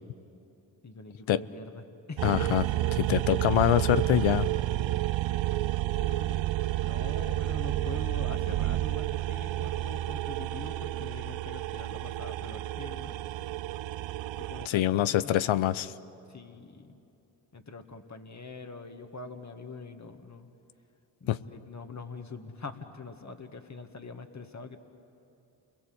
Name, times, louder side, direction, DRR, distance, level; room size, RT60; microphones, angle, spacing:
voice 1, 0.8-2.6 6.0-6.4 6.8-13.1 14.4-15.3 16.3-17.0 17.5-20.5 21.2-24.8, left 3 dB, 35° left, 7 dB, 2.1 m, -44 dB
voice 2, 2.2-2.6 3.0-4.5 14.7-15.9 21.3-21.4, left 13 dB, 80° left, 15 dB, 0.8 m, -25 dB
sound 1, 2.2-14.7, right 15 dB, 75° right, 0.6 m, -30 dB
29.0 x 22.0 x 7.9 m, 2.7 s
supercardioid pair, 45°, 46 cm